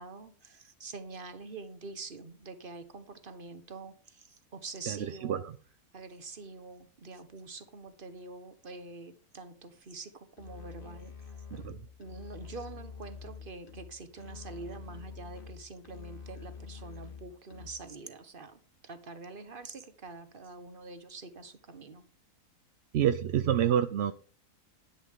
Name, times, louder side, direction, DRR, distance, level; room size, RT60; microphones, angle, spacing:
voice 1, 0.0-5.5 5.9-11.1 12.0-22.0, right 3 dB, 35° right, 10 dB, 1.4 m, -45 dB
voice 2, 4.9-5.5 11.5-11.8 22.9-24.1, right 10 dB, 60° right, 10 dB, 0.7 m, -28 dB
Musical instrument, 10.4-18.0, left 6 dB, 35° left, 1.5 m, -47 dB
10.5 x 10.5 x 3.8 m, 0.40 s
omnidirectional pair, 1.6 m